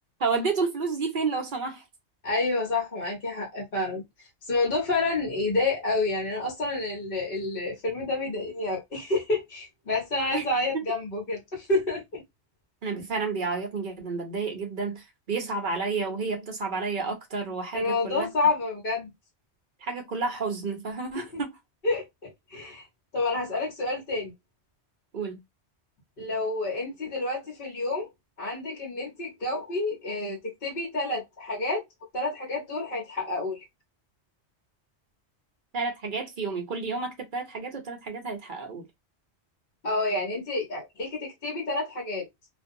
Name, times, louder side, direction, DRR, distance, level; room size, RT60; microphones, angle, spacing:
voice 1, 0.2-1.8 10.3-10.4 10.7-10.8 12.8-18.3 19.8-21.5 25.1-25.4 35.7-38.9, right 4 dB, 50° right, 0.8 m, -30 dB
voice 2, 2.2-4.0 4.5-12.2 17.7-19.1 21.1-21.4 21.8-22.8 23.1-24.3 26.2-28.1 28.4-31.8 32.1-33.6 39.8-42.3, left 2 dB, 55° left, 1.1 m, -29 dB
2.5 x 2.2 x 2.6 m
omnidirectional pair, 1.2 m